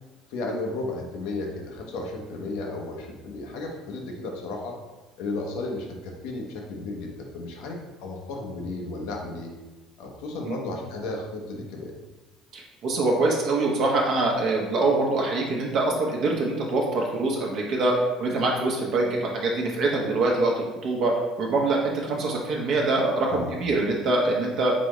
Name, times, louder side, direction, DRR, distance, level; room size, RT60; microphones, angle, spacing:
voice 1, 0.3-4.8 5.2-9.5 10.0-11.9 23.3-23.6, left 2 dB, 75° left, 1 dB, 0.9 m, -34 dB
voice 2, 12.5-21.1 21.4-24.7, right 2 dB, 55° right, -1 dB, 0.8 m, -24 dB
4.0 x 3.7 x 3.1 m, 1.1 s
supercardioid pair, 105°, 0 cm